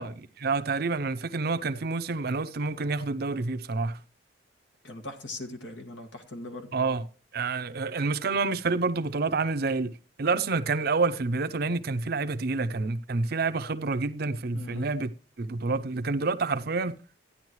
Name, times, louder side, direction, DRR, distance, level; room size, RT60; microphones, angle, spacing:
voice 1, 0.0-4.0 6.7-7.1 7.3-9.9 10.2-15.1 15.4-16.9, right 3 dB, 55° right, 0.6 m, -28 dB
voice 2, 4.8-6.7 14.5-14.9, left 2 dB, 85° left, 1.9 m, -40 dB
13.5 x 10.0 x 3.1 m
head